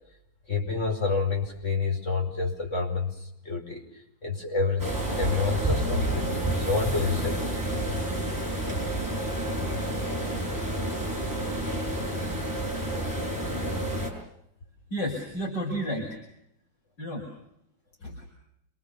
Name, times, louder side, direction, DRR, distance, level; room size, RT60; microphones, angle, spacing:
voice 1, 0.5-4.9 5.2-7.5 8.7-8.8, left 4 dB, 35° left, 2 dB, 5.6 m, -29 dB
sound 1, 4.8-14.1, right 1 dB, 10° right, 6.8 m, -29 dB
voice 2, 14.9-16.2 17.0-17.3 18.0-18.3, equal, 60° left, -1 dB, 6.3 m, -31 dB
28.5 x 25.0 x 6.8 m, 0.79 s
omnidirectional pair, 2.1 m